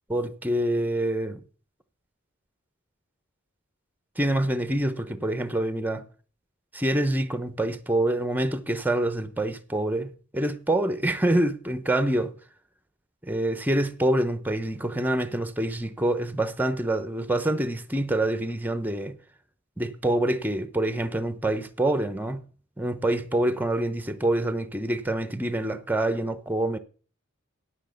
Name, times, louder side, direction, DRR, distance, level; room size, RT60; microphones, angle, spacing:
voice 1, 0.1-1.4 4.2-6.1 6.7-12.3 13.2-19.2 19.8-22.4 22.8-26.8, right 1 dB, 10° right, 0.9 m, -26 dB
10.0 x 6.4 x 6.6 m
head